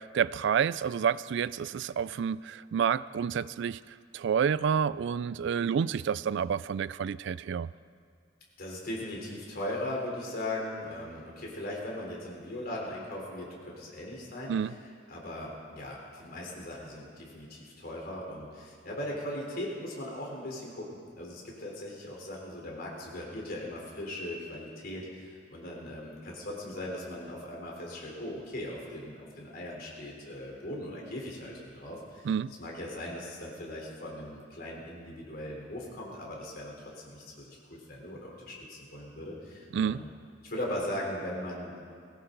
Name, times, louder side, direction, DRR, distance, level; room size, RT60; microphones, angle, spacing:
voice 1, 0.0-3.8 4.1-7.7 14.5-14.7 32.2-32.5 39.7-40.0, right 7 dB, 65° right, 18 dB, 0.3 m, -29 dB
voice 2, 8.6-14.8 15.1-32.3 32.6-40.1 40.4-41.8, left 1 dB, 55° left, -2 dB, 3.8 m, -39 dB
20.0 x 17.0 x 3.9 m, 2.2 s
head